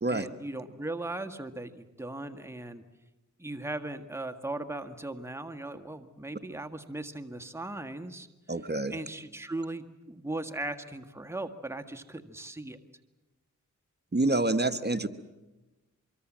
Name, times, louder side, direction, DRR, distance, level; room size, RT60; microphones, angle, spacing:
voice 1, 0.1-2.8 3.4-8.3 8.9-12.8, right 2 dB, 10° right, 6 dB, 1.7 m, -38 dB
voice 2, 8.5-8.9 14.1-15.1, right 2 dB, 30° right, 9 dB, 1.3 m, -27 dB
24.5 x 23.5 x 7.5 m, 1.1 s
cardioid pair, 50°, 32 cm